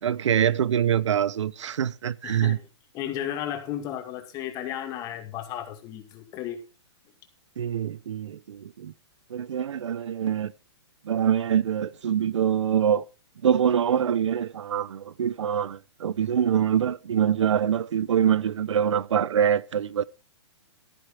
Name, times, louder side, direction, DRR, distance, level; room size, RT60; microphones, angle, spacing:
voice 1, 0.0-2.6 7.6-8.9 9.3-10.5 11.0-13.1 13.4-20.0, right 9 dB, 90° right, 0.7 m, -24 dB
voice 2, 2.2-2.6 2.9-6.6, left 10 dB, 25° left, 2.1 m, -34 dB
13.5 x 9.5 x 4.7 m
hypercardioid pair, 160°, 15 cm